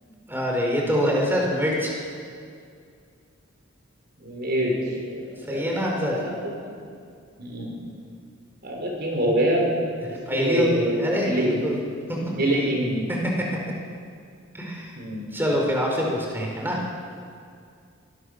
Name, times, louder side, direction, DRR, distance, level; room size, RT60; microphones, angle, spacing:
voice 1, 0.0-2.0 5.5-6.2 10.3-11.8 12.1-12.2 13.1-13.5 14.5-14.9 15.3-16.8, equal, 10° right, -1 dB, 4.5 m, -25 dB
voice 2, 4.2-4.7 5.1-5.6 6.1-6.3 6.7-6.8 7.4-7.8 8.6-9.7 10.3-11.6 12.3-13.1 15.0-15.3, right 1 dB, 50° right, 0 dB, 4.3 m, -25 dB
24.5 x 19.0 x 6.5 m, 2.3 s
head